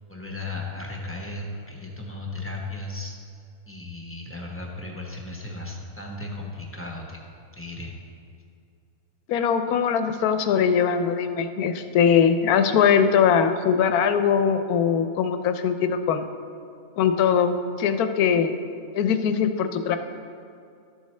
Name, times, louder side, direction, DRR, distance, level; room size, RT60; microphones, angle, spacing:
voice 1, 0.1-3.1 3.7-7.2 7.5-7.9, left 2 dB, 10° left, -1 dB, 0.7 m, -35 dB
voice 2, 9.3-16.3 17.0-18.6 18.9-20.0, left 7 dB, 75° left, 8 dB, 1.1 m, -21 dB
12.5 x 7.2 x 3.2 m, 2.4 s
omnidirectional pair, 1.6 m